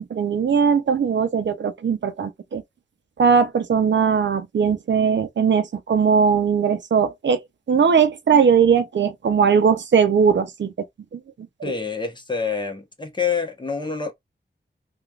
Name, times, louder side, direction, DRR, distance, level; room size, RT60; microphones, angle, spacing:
voice 1, 0.0-2.6 3.2-7.4 7.7-10.7 11.1-11.2 11.7-11.8, right 6 dB, 75° right, 0.5 m, -19 dB
voice 2, 11.6-14.1, left 5 dB, 25° left, 0.9 m, -27 dB
3.1 x 2.4 x 2.3 m
wide cardioid pair, 65°, 19 cm